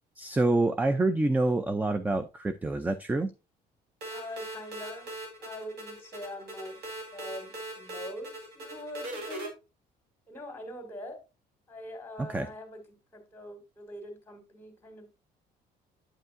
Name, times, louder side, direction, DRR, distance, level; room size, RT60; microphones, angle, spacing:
voice 1, 0.2-3.3 12.3-12.5, right 2 dB, 10° right, 0.4 m, -27 dB
sound 1, 4.0-9.5, right 1 dB, 70° right, 2.1 m, -40 dB
voice 2, 4.1-5.1 5.4-6.8 7.1-9.5 10.3-11.2 11.7-12.8 13.1-15.1, left 1 dB, 15° left, 2.3 m, -43 dB
8.5 x 5.4 x 2.5 m
cardioid pair, 110°, 17 cm